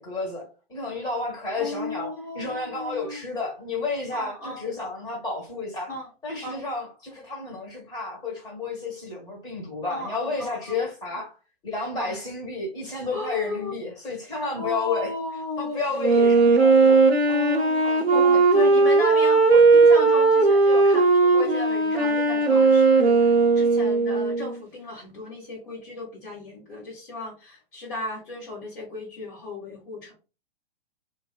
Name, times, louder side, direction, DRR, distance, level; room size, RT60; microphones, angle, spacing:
voice 1, 0.0-5.9 6.2-11.3 11.6-15.1 15.6-17.0 17.8-18.4, left 3 dB, 15° left, 1.1 m, -31 dB
voice 2, 1.6-3.2 4.1-4.6 5.9-6.1 6.4-6.6 9.9-10.8 12.0-12.1 13.1-13.8 14.6-15.8 17.3-30.1, left 2 dB, 55° left, 1.2 m, -35 dB
Wind instrument woodwind instrument, 16.0-24.6, right 3 dB, 90° right, 0.6 m, -18 dB
2.5 x 2.3 x 2.3 m
figure-of-eight pair, 115°, 31 cm